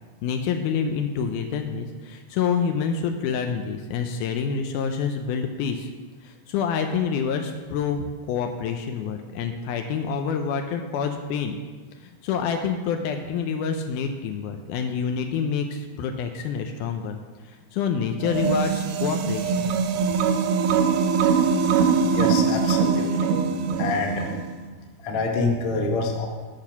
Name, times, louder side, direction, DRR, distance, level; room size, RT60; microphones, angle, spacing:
voice 1, 0.2-5.9 6.2-11.6 12.0-17.2 17.4-19.7, left 6 dB, 80° left, 5 dB, 2.0 m, -27 dB
sound 1, 18.2-24.5, right 5 dB, 90° right, 2.2 m, -22 dB
voice 2, 22.0-23.3 23.8-24.3 25.0-26.3, left 3 dB, 60° left, 2 dB, 1.6 m, -26 dB
8.9 x 5.9 x 5.8 m, 1.4 s
omnidirectional pair, 3.7 m